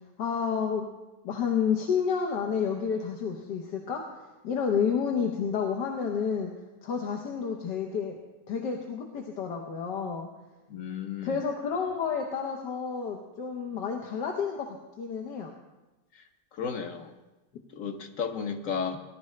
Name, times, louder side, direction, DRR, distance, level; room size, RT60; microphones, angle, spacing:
voice 1, 0.2-0.9 1.2-4.0 4.4-6.5 6.8-8.2 8.5-10.3 11.2-15.5, left 6 dB, 80° left, 1 dB, 1.6 m, -30 dB
voice 2, 10.7-11.4 16.5-17.1 17.7-19.0, left 6 dB, 55° left, 5 dB, 1.2 m, -33 dB
18.5 x 11.0 x 3.2 m, 1.1 s
omnidirectional pair, 1.8 m